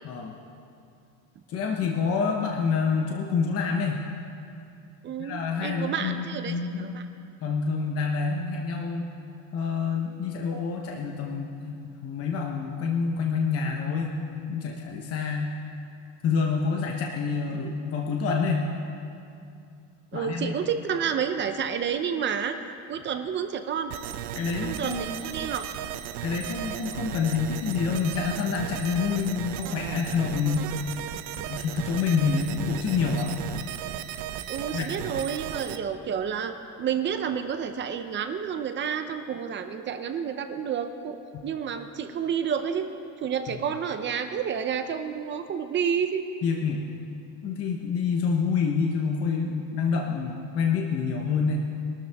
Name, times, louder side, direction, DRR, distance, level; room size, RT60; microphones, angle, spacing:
voice 1, 0.0-0.3 1.5-4.0 5.2-6.9 7.4-9.1 9.5-14.2 14.5-15.6 16.2-18.7 20.1-20.5 24.4-25.2 26.2-30.7 31.4-33.4 34.7-34.9 41.3-41.4 43.5-43.6 46.4-46.8 47.4-51.6, left 5 dB, 35° left, 1 dB, 1.0 m, -27 dB
voice 2, 5.0-7.0 20.1-22.6 22.9-23.9 24.6-25.7 34.5-41.2 41.4-42.9 43.2-46.2, right 7 dB, 30° right, 8 dB, 0.6 m, -30 dB
sound 1, 23.9-35.8, right 11 dB, 80° right, 0.8 m, -35 dB
22.0 x 13.0 x 3.5 m, 2.5 s
cardioid pair, 165°, 39 cm